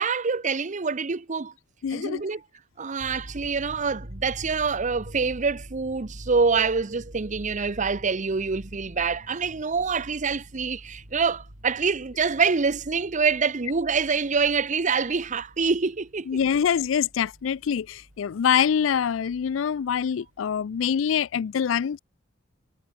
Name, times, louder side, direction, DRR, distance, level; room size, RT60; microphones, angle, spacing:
voice 1, 0.0-1.5 1.9-2.4 2.8-16.3, right 5 dB, 40° right, 0.7 m, -26 dB
voice 2, 1.8-2.2 16.3-22.0, left 7 dB, 75° left, 0.4 m, -25 dB
sound 1, 3.0-20.1 20.4-20.7, equal, 70° right, 5.7 m, -46 dB
head